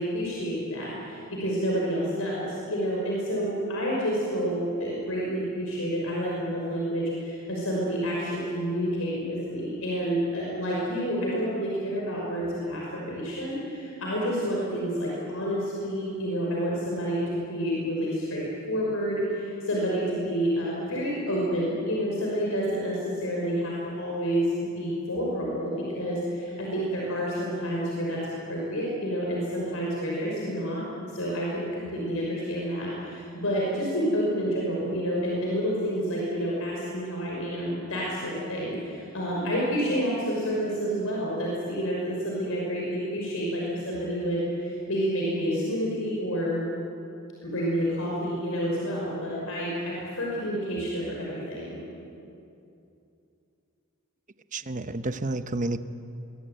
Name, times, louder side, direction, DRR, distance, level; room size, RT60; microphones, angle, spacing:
voice 1, 0.0-30.8 31.1-46.6 47.4-51.8, equal, 75° left, -4 dB, 5.8 m, -29 dB
voice 2, 54.5-55.8, right 2 dB, 35° right, 10 dB, 1.0 m, -30 dB
24.5 x 22.5 x 9.3 m, 2.7 s
head